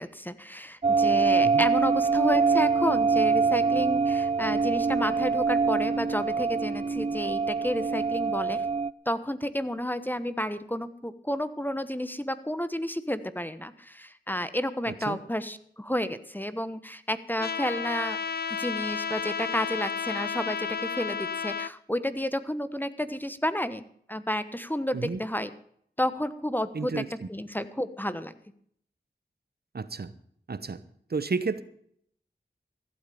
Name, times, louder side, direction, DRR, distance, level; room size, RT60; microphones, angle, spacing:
voice 1, 0.0-8.6 9.1-18.2 18.5-25.5 26.0-28.3, equal, 10° left, 13 dB, 1.1 m, -31 dB
sound 1, 0.8-8.9, right 4 dB, 35° right, 0.5 m, -24 dB
voice 2, 14.9-15.2 24.9-25.2 26.7-27.3 29.7-30.1 30.5-30.8 31.1-31.6, right 4 dB, 60° right, 14 dB, 0.9 m, -32 dB
Trumpet, 17.4-21.7, left 6 dB, 60° left, 0.6 m, -32 dB
15.0 x 8.4 x 6.9 m, 0.65 s
cardioid pair, 40°, 18 cm